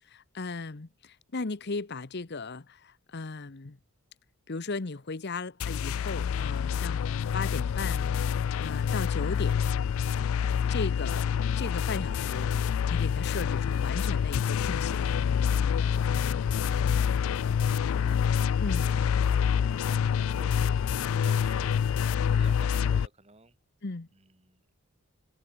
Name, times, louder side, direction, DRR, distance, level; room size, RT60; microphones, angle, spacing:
voice 1, 0.0-3.8 4.5-8.1 8.6-9.7 10.7-11.3 11.6-15.1 18.6-18.9 23.8-24.1, left 3 dB, 50° left, 0.9 m, -36 dB
sound 1, 5.6-23.1, left 7 dB, 70° left, 0.3 m, -27 dB
voice 2, 17.9-18.3 18.5-23.6 24.1-24.7, right 2 dB, 30° right, 3.1 m, -53 dB
head